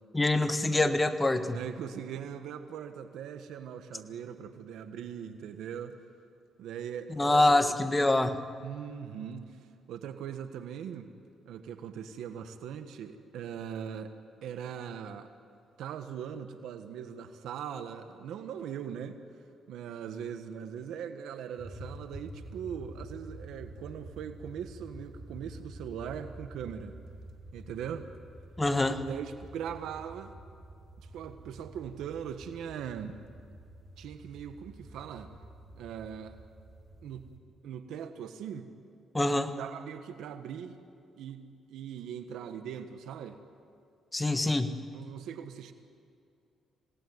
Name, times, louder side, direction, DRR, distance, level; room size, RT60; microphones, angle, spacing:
voice 1, 0.1-1.6 7.1-8.5 28.6-29.0 39.1-39.5 44.1-44.8, left 2 dB, 15° left, 8 dB, 1.5 m, -25 dB
voice 2, 1.5-6.0 6.6-7.6 8.6-11.1 11.4-14.1 14.4-15.3 15.8-19.2 19.7-27.0 27.5-28.1 28.8-30.3 31.0-33.2 34.0-35.3 35.7-36.4 37.0-37.3 37.6-38.7 39.6-40.8 41.2-43.4 44.9-45.7, right 8 dB, 80° right, 8 dB, 1.4 m, -40 dB
sound 1, 21.6-37.4, right 1 dB, 25° right, 3.2 m, -48 dB
26.0 x 18.5 x 9.6 m, 2.5 s
cardioid pair, 90°, 0 cm